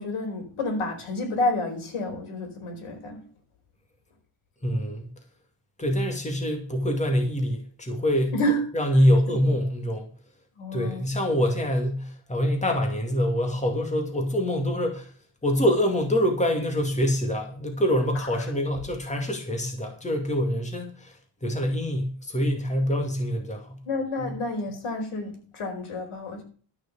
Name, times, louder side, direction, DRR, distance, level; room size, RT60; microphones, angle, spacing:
voice 1, 0.0-3.2 8.3-8.6 9.3-9.4 10.6-11.0 18.1-18.5 23.9-26.4, left 1 dB, 80° left, 4.8 m, -29 dB
voice 2, 4.6-5.1 5.8-8.3 8.7-10.1 10.7-15.1 15.4-21.1 21.4-23.8 24.2-24.3, equal, 15° left, 2.4 m, -25 dB
13.0 x 6.2 x 7.3 m
cardioid pair, 130°, 50 cm